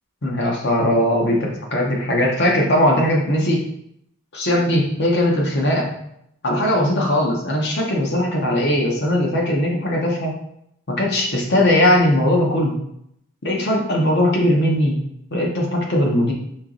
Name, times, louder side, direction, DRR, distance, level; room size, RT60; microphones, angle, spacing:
voice 1, 0.2-3.7 4.3-5.9 6.4-10.3 10.9-12.8 13.4-14.9 15.3-16.3, left 1 dB, 55° left, -1 dB, 1.0 m, -19 dB
4.5 x 3.0 x 3.9 m, 0.75 s
head